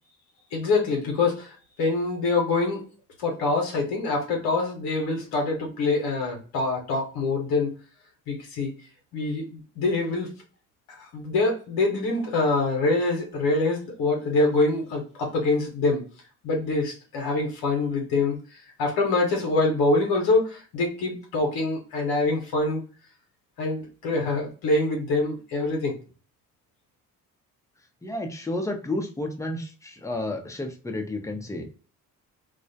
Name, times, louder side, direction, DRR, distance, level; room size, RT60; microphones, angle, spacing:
voice 1, 0.5-2.8 3.2-7.7 8.3-8.7 9.1-10.3 10.9-16.0 16.4-22.8 23.6-25.9, left 3 dB, 90° left, 0 dB, 0.8 m, -25 dB
voice 2, 28.0-31.7, left 1 dB, 10° left, 3 dB, 0.6 m, -31 dB
2.4 x 2.0 x 2.6 m, 0.37 s
supercardioid pair, 70°, 37 cm